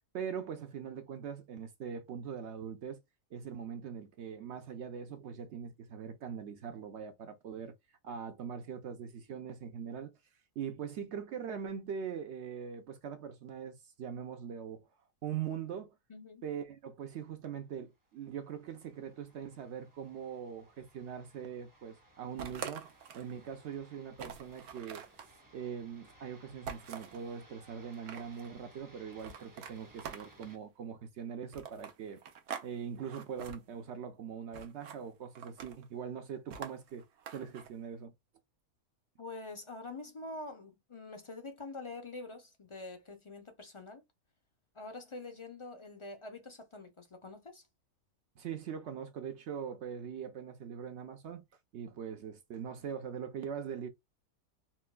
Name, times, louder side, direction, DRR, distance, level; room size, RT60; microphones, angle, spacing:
voice 1, 0.0-3.0 3.3-7.7 8.0-10.1 10.6-14.9 15.2-15.9 16.4-25.0 25.5-32.2 32.5-37.0 37.3-38.1 48.4-51.4 51.7-53.9, right 7 dB, 60° right, 0.8 m, -42 dB
voice 2, 16.1-16.4 39.2-44.0 44.7-47.6, left 2 dB, 50° left, 0.3 m, -45 dB
sound 1, 18.0-30.6, right 1 dB, 20° right, 0.6 m, -61 dB
sound 2, 22.4-23.3 23.7-23.8 24.2-25.3 26.7-27.2 27.8-28.5 29.2-30.6 31.5-32.7 33.0-33.6 34.5-35.0 35.4-35.9 36.5-37.7, right 7 dB, 80° right, 1.2 m, -45 dB
4.3 x 2.3 x 2.2 m
omnidirectional pair, 1.5 m